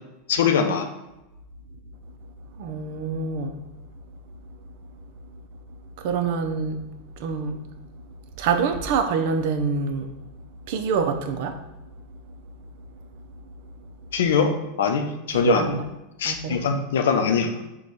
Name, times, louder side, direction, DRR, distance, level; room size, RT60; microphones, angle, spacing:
voice 1, 0.3-0.9 14.1-15.8 16.2-17.6, left 6 dB, 90° left, 6 dB, 0.5 m, -22 dB
voice 2, 2.6-3.6 6.0-6.8 7.2-7.6 8.4-10.1 10.7-11.6 15.3-15.8 16.2-16.6, right 5 dB, 60° right, 7 dB, 0.5 m, -25 dB
4.7 x 2.3 x 4.0 m, 0.97 s
supercardioid pair, 135°, 0 cm